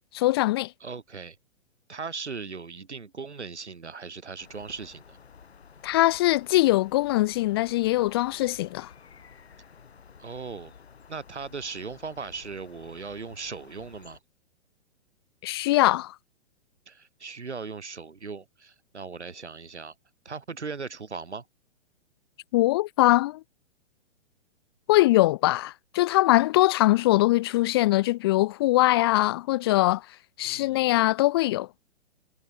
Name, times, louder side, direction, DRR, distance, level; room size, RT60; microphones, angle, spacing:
voice 1, 0.1-0.7 5.8-8.9 15.4-16.1 22.5-23.4 24.9-30.1 30.4-31.7, left 17 dB, 20° left, 0.5 m, -22 dB
voice 2, 0.8-1.4 1.9-5.2 10.2-10.7 11.1-14.2 16.9-19.9 20.2-21.4 30.4-31.0, right 5 dB, 75° right, 4.1 m, -38 dB
sound 1, 4.4-14.2, left 6 dB, 65° left, 5.7 m, -52 dB
figure-of-eight pair, 115°, 35 cm